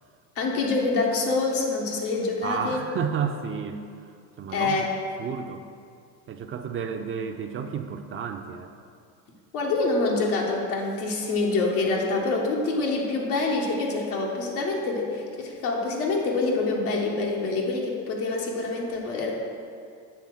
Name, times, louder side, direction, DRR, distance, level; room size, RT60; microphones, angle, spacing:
voice 1, 0.3-2.8 4.5-4.9 9.5-19.3, left 3 dB, 85° left, -2 dB, 1.4 m, -26 dB
voice 2, 2.4-4.9 5.2-5.6 6.3-8.7, right 6 dB, 30° right, 6 dB, 0.4 m, -32 dB
7.0 x 3.4 x 6.2 m, 2.3 s
supercardioid pair, 80°, 44 cm